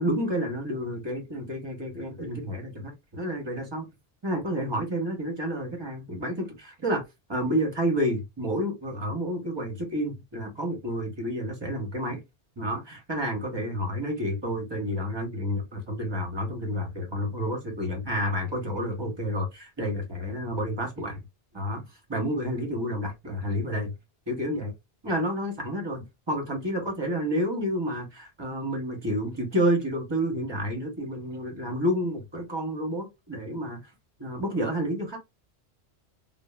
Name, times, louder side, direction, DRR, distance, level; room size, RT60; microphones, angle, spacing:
voice 1, 0.0-3.8 4.2-7.0 7.3-12.2 12.6-21.2 21.5-21.8 22.1-23.9 24.3-24.7 25.0-33.8 34.2-35.2, equal, 25° right, 0.8 m, -30 dB
3.0 x 2.1 x 2.2 m
omnidirectional pair, 1.1 m